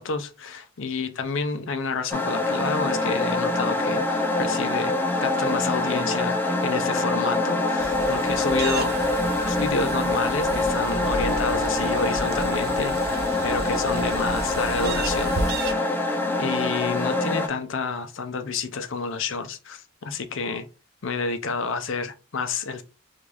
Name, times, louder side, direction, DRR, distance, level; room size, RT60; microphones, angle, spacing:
voice 1, 0.0-4.9 5.2-15.9 16.4-20.7 21.0-22.8, left 4 dB, 65° left, 0.5 m, -29 dB
sound 1, 2.1-17.5, left 2 dB, 10° left, 0.4 m, -25 dB
sound 2, 7.8-15.7, right 3 dB, 45° right, 0.5 m, -34 dB
3.5 x 2.5 x 3.3 m
head